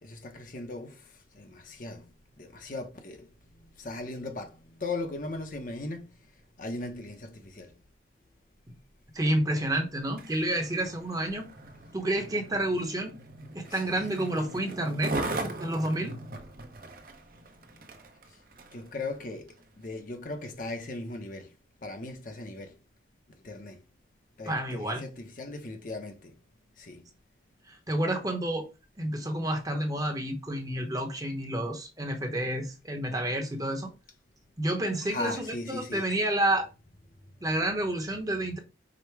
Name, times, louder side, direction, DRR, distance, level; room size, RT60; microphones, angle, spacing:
voice 1, 0.0-1.0 1.3-2.0 2.4-3.3 3.8-6.1 6.6-7.7 13.7-14.1 18.7-21.5 21.8-22.7 23.4-23.8 24.4-26.3 26.8-27.0 35.0-36.1, left 2 dB, 45° left, 0.7 m, -38 dB
voice 2, 9.1-11.5 11.9-13.2 13.5-15.1 15.6-16.2 24.5-25.0 27.7-28.6 29.0-33.9 34.6-36.7 37.4-38.6, right 1 dB, 20° right, 0.9 m, -29 dB
Skateboard, 10.0-18.9 19.5-19.6, right 2 dB, 50° right, 0.8 m, -39 dB
5.0 x 2.1 x 4.5 m
head